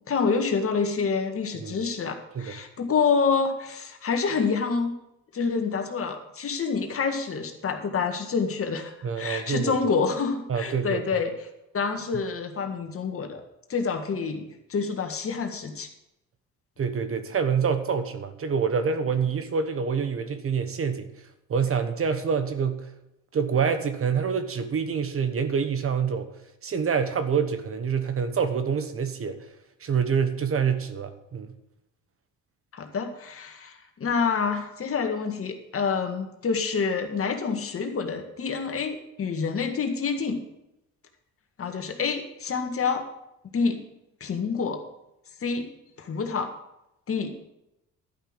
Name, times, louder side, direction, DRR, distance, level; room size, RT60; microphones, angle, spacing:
voice 1, 0.0-4.9 5.3-11.5 11.7-13.4 13.7-15.9 32.7-40.4 41.6-43.0 43.5-43.8 44.2-44.8 45.4-45.7 46.0-46.5 47.1-47.3, left 5 dB, 45° left, 5 dB, 1.9 m, -27 dB
voice 2, 9.0-9.9 10.5-11.0 16.8-21.1 21.5-22.9 23.3-26.3 26.6-29.4 29.8-31.5, right 6 dB, 45° right, 10 dB, 1.2 m, -26 dB
12.0 x 5.7 x 8.8 m, 0.86 s
cardioid pair, 90°, 30 cm